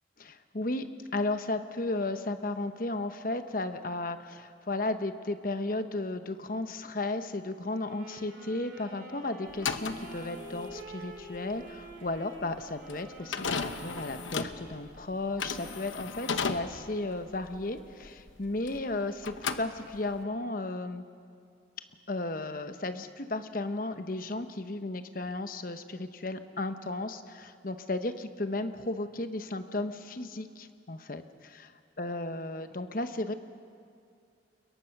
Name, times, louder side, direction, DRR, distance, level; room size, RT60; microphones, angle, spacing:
voice 1, 0.2-0.9 1.1-21.0 22.1-31.7 32.0-33.3, left 2 dB, 45° left, 9 dB, 1.0 m, -34 dB
Wind instrument woodwind instrument, 7.8-15.0, right 1 dB, 50° right, 3.9 m, -47 dB
sound 1, 9.5-18.9 19.2-20.2, left 5 dB, 85° left, 1.0 m, -36 dB
28.0 x 22.0 x 6.0 m, 2.3 s
head